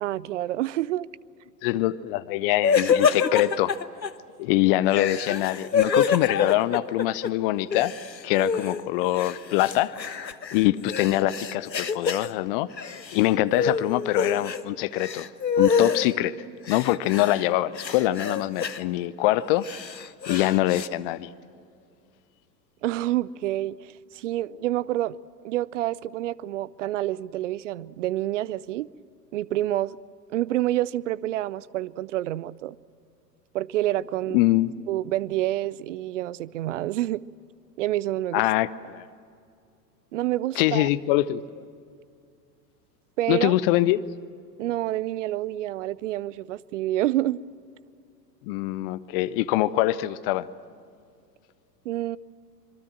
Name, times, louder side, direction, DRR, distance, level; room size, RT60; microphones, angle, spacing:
voice 1, 0.0-1.1 22.8-25.2 25.4-28.9 29.3-30.0 30.3-32.8 33.5-34.4 34.9-37.2 37.8-38.5 40.1-40.9 43.2-43.5 44.6-47.4 51.8-52.2, right 14 dB, 50° right, 0.6 m, -28 dB
voice 2, 1.6-3.7 4.4-7.9 8.2-9.9 10.5-12.7 13.1-15.3 15.6-16.3 16.7-19.7 20.3-21.3 34.3-34.7 38.3-39.1 40.6-41.4 43.3-44.0 48.4-50.5, left 16 dB, 35° left, 0.7 m, -24 dB
sound 1, 2.6-4.1 4.9-7.3 7.6-8.8 9.2-12.3 12.7-13.3 13.6-14.6 14.9-16.1 16.7-17.5 17.8-18.8 19.4-20.9, left 6 dB, 85° left, 1.0 m, -26 dB
26.0 x 23.0 x 7.5 m
figure-of-eight pair, 90°, 50 cm